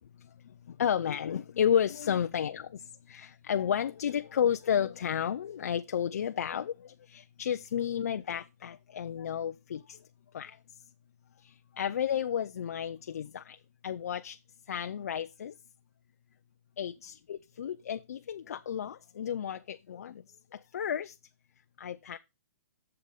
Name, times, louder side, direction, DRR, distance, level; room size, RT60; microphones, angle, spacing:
voice 1, 0.2-2.6 3.1-10.0 10.3-10.6 11.4-13.6 13.8-14.4 14.7-15.5 16.8-20.2 20.5-21.2 21.8-22.2, left 8 dB, 60° left, 0.5 m, -32 dB
8.0 x 7.0 x 5.2 m
hypercardioid pair, 175°, 9 cm